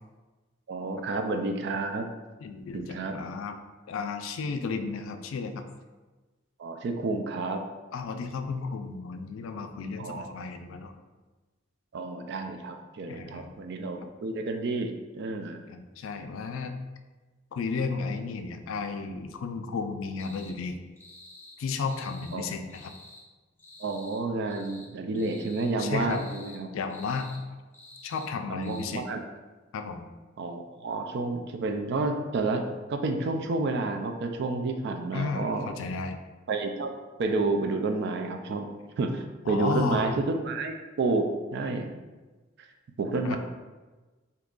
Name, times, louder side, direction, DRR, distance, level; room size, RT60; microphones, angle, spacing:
voice 1, 0.7-2.1 2.7-3.2 6.6-7.6 10.0-10.3 11.9-15.6 22.3-22.5 23.8-26.7 28.5-29.2 30.4-32.6 32.9-35.7 36.5-36.9 37.2-38.7 39.0-41.3 41.5-41.9 43.0-43.4, right 3 dB, 55° right, 5 dB, 0.3 m, -30 dB
voice 2, 2.4-3.6 3.9-5.7 7.9-10.9 13.1-13.5 14.0-14.1 15.7-16.8 17.5-20.8 21.6-22.9 25.8-26.2 26.7-27.3 28.0-29.0 29.7-30.0 35.1-36.2 39.5-40.1 43.2-43.4, left 4 dB, 80° left, 7 dB, 0.3 m, -33 dB
sound 1, 20.2-20.5 21.0-21.6 21.8-22.4 22.7-23.2 23.6-24.2 24.5-24.9 25.1-25.7 26.1-26.6 26.9-27.4 27.7-28.3 28.6-28.9, left 2 dB, 10° left, 0.6 m, -50 dB
2.8 x 2.4 x 3.6 m, 1.2 s
head